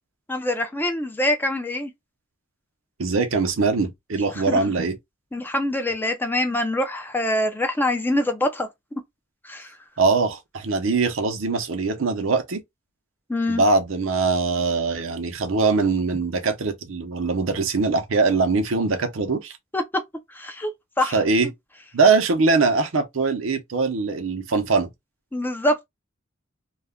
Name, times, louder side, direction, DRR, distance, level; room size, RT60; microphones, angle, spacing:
voice 1, 0.3-1.9 4.3-4.6 5.3-8.7 9.4-9.7 13.3-13.6 19.7-19.8 20.3-20.7 21.0-21.2 21.4-21.5 25.3-25.9, left 1 dB, 10° left, 0.4 m, -24 dB
voice 2, 3.0-5.0 10.0-12.6 13.5-19.5 21.1-21.5 21.9-24.9, right 4 dB, 75° right, 0.6 m, -22 dB
2.3 x 2.1 x 3.4 m
head